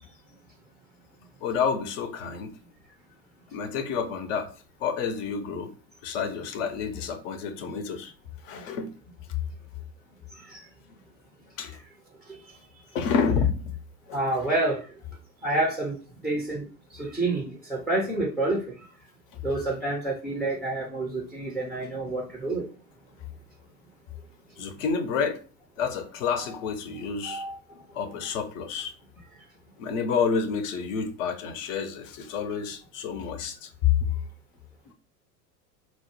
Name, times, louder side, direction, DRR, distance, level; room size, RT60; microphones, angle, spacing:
voice 1, 1.4-2.5 3.5-4.5 4.8-5.7 6.0-8.1 8.4-8.9 11.6-11.8 12.9-13.7 14.1-14.2 24.6-25.4 25.8-27.4 27.9-28.9 29.8-33.7 34.9-35.0, left 6 dB, 50° left, 0.8 m, -29 dB
voice 2, 14.1-14.9 15.4-16.0 16.2-16.6 16.9-18.6 19.4-22.7 27.3-27.6, right 2 dB, ahead, 0.5 m, -28 dB
4.3 x 2.0 x 3.0 m
figure-of-eight pair, 85°, 50 cm